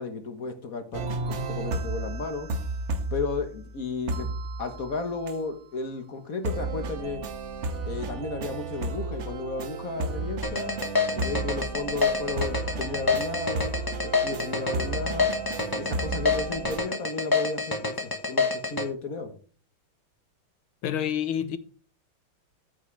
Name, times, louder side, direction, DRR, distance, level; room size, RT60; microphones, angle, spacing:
voice 1, 0.0-2.5 3.1-4.3 4.6-7.2 7.9-10.7 11.1-13.7 14.0-15.3 15.7-19.3, left 4 dB, 45° left, 1.5 m, -34 dB
sound 1, 0.9-3.7 4.1-5.3 6.4-16.8, right 3 dB, 55° right, 0.8 m, -33 dB
sound 2, 10.4-18.8, left 4 dB, 15° left, 0.8 m, -26 dB
voice 2, 20.8-21.6, left 9 dB, 85° left, 1.8 m, -28 dB
14.0 x 6.1 x 3.3 m
omnidirectional pair, 2.3 m